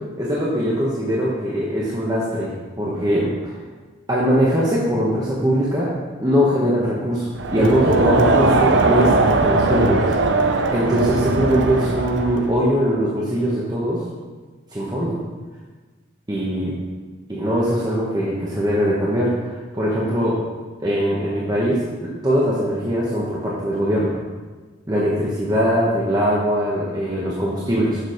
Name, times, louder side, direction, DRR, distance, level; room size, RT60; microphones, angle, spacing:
voice 1, 0.2-3.6 4.1-5.9 6.2-10.1 10.7-14.0 14.7-15.2 16.3-16.8 17.3-20.4 20.8-24.2 24.9-28.0, equal, 20° right, -6 dB, 1.0 m, -21 dB
Crowd, 7.4-12.6, right 2 dB, 60° right, 0.6 m, -19 dB
6.8 x 6.1 x 4.9 m, 1.3 s
head